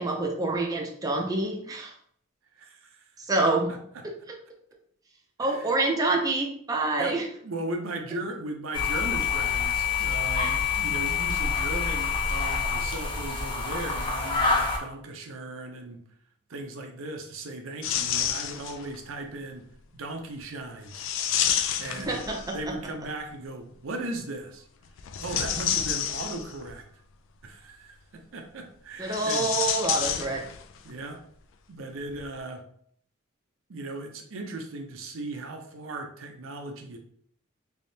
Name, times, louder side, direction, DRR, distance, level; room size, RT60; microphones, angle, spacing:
voice 1, 0.0-1.9 3.3-3.7 5.4-7.2 21.9-22.7 29.0-30.4, right 2 dB, 20° right, 0 dB, 0.5 m, -27 dB
voice 2, 2.5-3.0 3.7-4.0 5.4-5.8 6.9-16.0 16.5-19.7 19.9-21.1 21.8-22.2 22.5-24.6 25.2-26.8 27.4-29.5 30.8-31.2 31.7-32.6 33.7-37.0, right 2 dB, 70° right, 4 dB, 0.6 m, -37 dB
sound 1, 8.7-14.8, left 5 dB, 25° left, 0.6 m, -27 dB
sound 2, 17.8-18.9 20.9-22.7 25.0-26.7 29.0-30.8 31.0-31.1 32.1-32.2, left 9 dB, 65° left, 0.3 m, -29 dB
3.4 x 3.1 x 2.7 m, 0.63 s
head